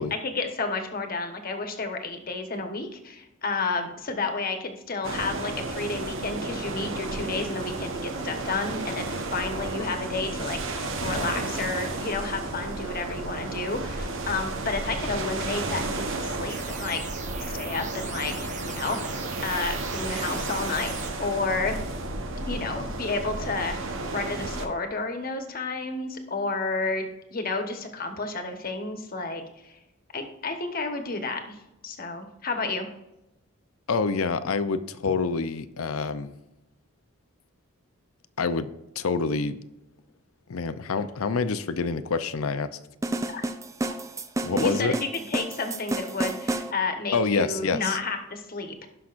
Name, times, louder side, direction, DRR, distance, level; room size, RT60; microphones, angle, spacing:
voice 1, 0.1-17.0 17.4-21.8 22.5-29.8 30.1-31.6 31.8-32.9 43.3-43.4 44.6-48.9, left 3 dB, 40° left, 5 dB, 1.2 m, -31 dB
sound 1, 5.0-24.7, right 2 dB, 65° right, 1.0 m, -32 dB
sound 2, 16.5-21.1, right 5 dB, 35° right, 1.0 m, -40 dB
voice 2, 33.9-36.3 38.4-38.7 39.0-39.6 40.5-42.8 44.4-44.9 47.1-48.0, left 4 dB, 80° left, 12 dB, 0.6 m, -27 dB
sound 3, 43.0-46.7, right 2 dB, 15° right, 0.4 m, -30 dB
17.5 x 5.9 x 2.5 m, 0.93 s
head